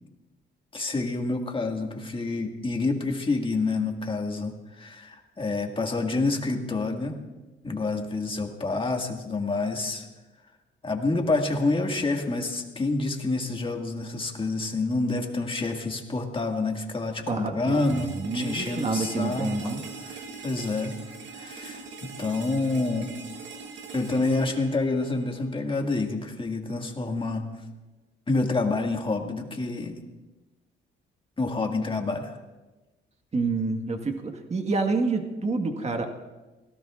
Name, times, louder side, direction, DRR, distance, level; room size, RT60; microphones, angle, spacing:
voice 1, 0.7-7.2 7.6-10.1 10.8-21.0 21.3-23.1 23.9-27.5 28.3-29.9 31.4-32.3, left 3 dB, 25° left, 2 dB, 2.0 m, -28 dB
voice 2, 17.3-19.8 33.3-36.1, right 3 dB, 35° right, 5 dB, 1.6 m, -28 dB
sound 1, 17.7-25.7, right 5 dB, 70° right, 2.0 m, -42 dB
25.0 x 17.5 x 2.5 m, 1.1 s
cardioid pair, 90°, 20 cm